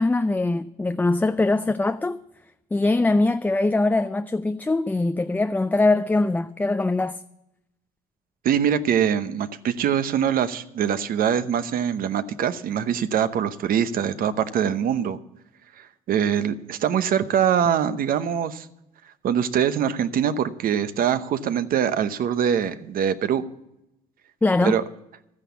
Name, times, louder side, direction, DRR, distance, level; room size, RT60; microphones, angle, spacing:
voice 1, 0.0-2.2 2.7-7.2 24.4-24.8, left 2 dB, 10° left, 0.4 m, -22 dB
voice 2, 8.4-15.2 15.8-18.7 19.2-23.4 24.6-24.8, right 8 dB, 60° right, 0.9 m, -23 dB
13.0 x 9.9 x 7.0 m
cardioid pair, 110°, 17 cm